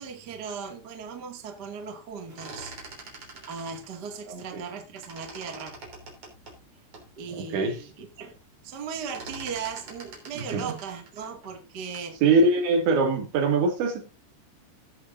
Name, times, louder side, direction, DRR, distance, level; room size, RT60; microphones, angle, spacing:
voice 1, 0.0-2.7 3.1-5.8 7.2-8.4 8.6-12.2, right 6 dB, 50° right, 1.2 m, -37 dB
sound 1, 2.1-4.7 5.0-7.1 7.6-7.7 8.0-8.4 8.6-12.2, right 3 dB, 35° right, 3.9 m, -44 dB
voice 2, 4.3-4.6 7.4-7.8 10.5-10.7 12.2-14.0, right 3 dB, 70° right, 4.3 m, -23 dB
18.0 x 8.0 x 2.6 m
omnidirectional pair, 5.7 m